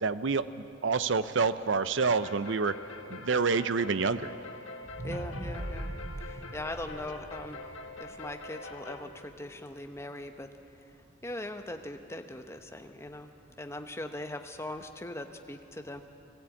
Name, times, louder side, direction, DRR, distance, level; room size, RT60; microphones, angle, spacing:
voice 1, 0.0-0.5 0.8-2.7 3.1-4.3, right 4 dB, 65° right, 13 dB, 0.6 m, -27 dB
sound 1, 2.0-9.1, left 3 dB, 80° left, 1.7 m, -44 dB
sound 2, 4.9-9.1 9.6-9.7, right 1 dB, 35° right, 0.8 m, -41 dB
voice 2, 5.0-5.9 6.2-7.6 8.0-10.5 11.2-13.3 13.6-16.0, left 1 dB, 15° left, 6 dB, 1.0 m, -40 dB
20.0 x 15.5 x 8.5 m, 2.7 s
head